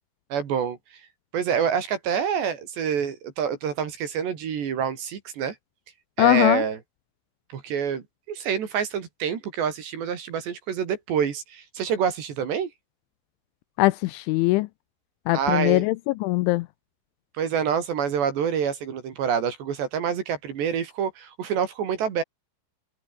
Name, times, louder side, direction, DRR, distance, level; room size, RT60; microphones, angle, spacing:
voice 1, 0.3-0.8 1.3-5.6 6.2-6.8 7.5-12.7 15.3-15.8 17.4-22.2, right 7 dB, 60° right, 4.8 m, -27 dB
voice 2, 6.2-6.6 13.8-14.7 15.3-16.7, left 20 dB, 85° left, 2.8 m, -21 dB
omnidirectional pair, 5.9 m